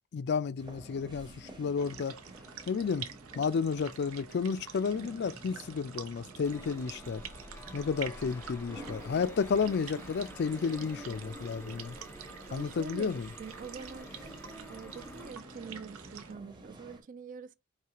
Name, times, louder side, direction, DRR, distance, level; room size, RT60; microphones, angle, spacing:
voice 1, 0.1-2.2 2.7-3.1 3.4-7.2 7.7-12.0 12.5-13.3, left 5 dB, 50° left, 0.4 m, -32 dB
sound 1, 0.6-17.0, right 1 dB, 20° right, 0.9 m, -50 dB
sound 2, 1.8-16.3, right 8 dB, 85° right, 0.7 m, -48 dB
sound 3, 6.4-15.3, equal, 10° left, 0.6 m, -50 dB
voice 2, 12.5-14.1 14.7-17.5, right 5 dB, 40° right, 0.3 m, -45 dB
4.9 x 3.3 x 2.9 m
head